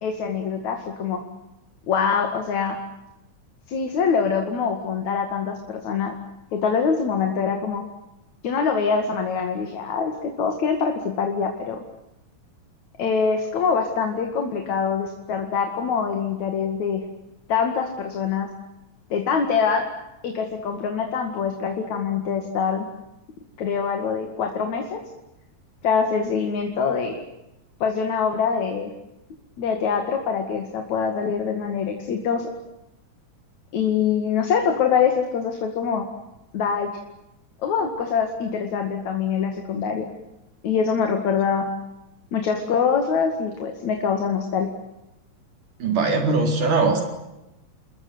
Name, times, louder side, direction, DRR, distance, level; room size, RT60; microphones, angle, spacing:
voice 1, 0.0-1.2 1.9-2.8 3.7-6.1 6.5-7.8 8.4-11.8 13.0-17.0 17.5-18.5 19.1-19.8 20.2-22.9 23.6-25.0 25.8-27.2 27.8-28.9 29.6-32.4 33.7-36.1 36.5-36.9 37.6-40.1 40.6-41.7 42.3-44.7, left 6 dB, 65° left, 4 dB, 3.4 m, -24 dB
voice 2, 45.8-47.0, right 3 dB, 85° right, 3 dB, 5.7 m, -20 dB
30.0 x 21.0 x 8.0 m, 0.92 s
omnidirectional pair, 3.5 m